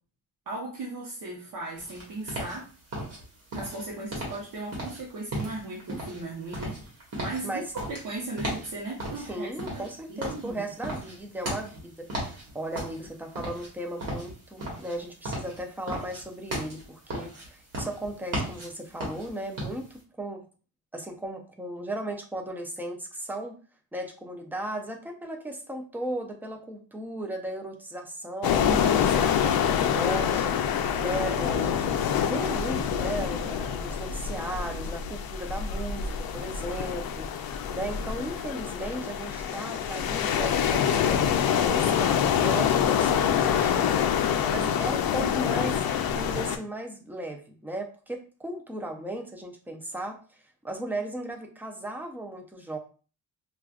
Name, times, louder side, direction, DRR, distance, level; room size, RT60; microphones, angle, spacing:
voice 1, 0.5-2.7 3.5-9.8 10.1-10.6 28.7-29.2 44.8-45.3, right 2 dB, 60° right, -3 dB, 0.9 m, -37 dB
sound 1, 1.8-20.0, right 1 dB, 45° right, 1.5 m, -36 dB
voice 2, 9.2-20.5 20.9-23.6 23.9-31.8 32.2-45.8 46.1-50.4 50.6-52.8, right 1 dB, 5° right, 3 dB, 0.4 m, -36 dB
sound 2, 28.4-46.6, left 8 dB, 75° left, 0.5 m, -26 dB
4.7 x 2.4 x 2.3 m, 0.37 s
wide cardioid pair, 175°, 36 cm